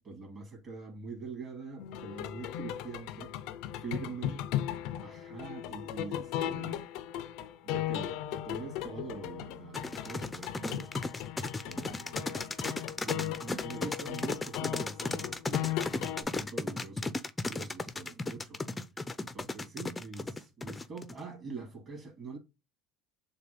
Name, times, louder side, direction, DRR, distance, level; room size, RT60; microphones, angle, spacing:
voice 1, 0.0-3.3 3.8-4.4 5.0-6.9 7.6-10.9 11.6-12.5 13.0-17.1 17.5-18.6 19.2-22.4, right 4 dB, 30° right, 2.5 m, -44 dB
sound 1, 1.8-16.2, left 12 dB, 70° left, 0.5 m, -37 dB
sound 2, 9.7-21.2, left 3 dB, 15° left, 0.5 m, -35 dB
6.6 x 2.3 x 3.2 m
supercardioid pair, 115°, 0 cm